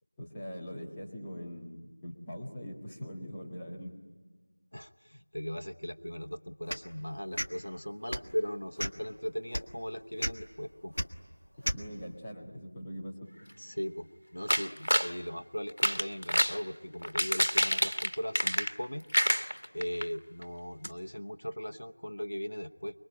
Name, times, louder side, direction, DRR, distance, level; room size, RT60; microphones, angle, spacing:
voice 1, 0.2-3.9 11.7-13.3, equal, 10° left, -6 dB, 1.8 m, -42 dB
voice 2, 4.7-10.9 13.6-19.0 19.7-23.0, equal, 65° left, 5 dB, 1.0 m, -38 dB
sound 1, 6.7-6.9 7.3-7.5 8.1-8.3 8.8-9.1 9.5-9.6 10.2-10.3 10.9-11.1 11.6-11.8, equal, 80° right, 1.5 m, -32 dB
sound 2, 14.5-15.1 15.7-16.6 17.0-18.8 19.1-20.0 20.4-20.5 20.8-20.9, equal, 85° left, 1.3 m, -28 dB
25.5 x 23.0 x 10.0 m, 1.3 s
figure-of-eight pair, 170°, 0 cm